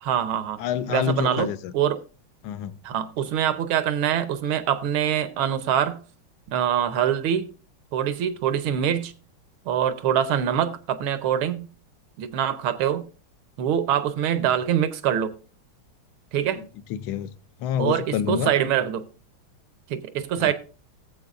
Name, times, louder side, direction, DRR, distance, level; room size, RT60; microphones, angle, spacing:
voice 1, 0.0-0.6 0.9-1.5 1.7-2.0 2.8-6.0 6.5-7.5 7.9-9.1 9.6-11.7 12.2-13.0 13.6-15.3 16.3-16.6 17.8-19.0 19.9-20.5, right 9 dB, 80° right, 1.6 m, -24 dB
voice 2, 0.6-1.7 2.4-2.8 16.6-17.3 17.6-18.5 20.4-20.5, left 10 dB, 80° left, 1.4 m, -28 dB
17.5 x 7.6 x 2.4 m
omnidirectional pair, 2.3 m